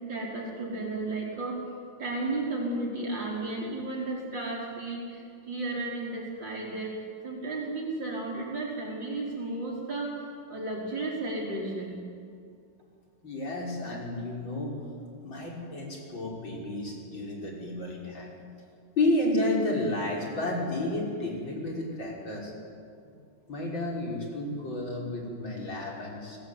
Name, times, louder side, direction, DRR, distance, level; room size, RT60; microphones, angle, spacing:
voice 1, 0.1-1.6 2.0-10.2 10.5-12.0, right 2 dB, 70° right, -2 dB, 5.2 m, -33 dB
voice 2, 13.2-14.7 15.2-18.4 19.0-22.5 23.5-26.4, left 1 dB, 90° left, -2 dB, 6.6 m, -31 dB
29.5 x 20.5 x 9.7 m, 2.3 s
omnidirectional pair, 2.0 m